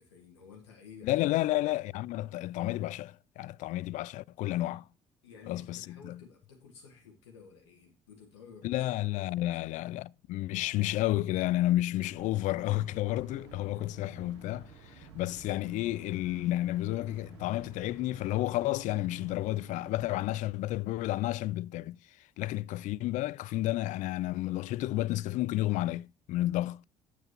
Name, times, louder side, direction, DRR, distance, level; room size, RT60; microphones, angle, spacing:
voice 1, 0.0-1.8 4.5-4.8 5.2-9.8 13.6-13.8, left 6 dB, 85° left, 1.5 m, -54 dB
voice 2, 1.0-4.8 5.5-6.2 8.6-14.7 15.0-22.0 22.4-26.8, left 16 dB, 60° left, 0.4 m, -31 dB
sound 1, 12.1-20.2, right 4 dB, 90° right, 2.6 m, -52 dB
9.1 x 8.1 x 2.8 m
hypercardioid pair, 55°, 14 cm